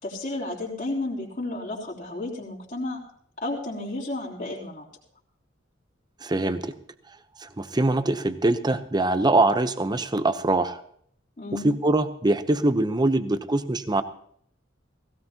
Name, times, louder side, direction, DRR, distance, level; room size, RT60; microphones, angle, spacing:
voice 1, 0.0-3.0 3.4-4.9 11.4-11.7, left 2 dB, 40° left, -5 dB, 3.5 m, -32 dB
voice 2, 6.2-6.7 7.4-10.8 11.5-14.0, right 2 dB, 20° right, 11 dB, 0.8 m, -23 dB
18.5 x 17.0 x 2.9 m, 0.63 s
head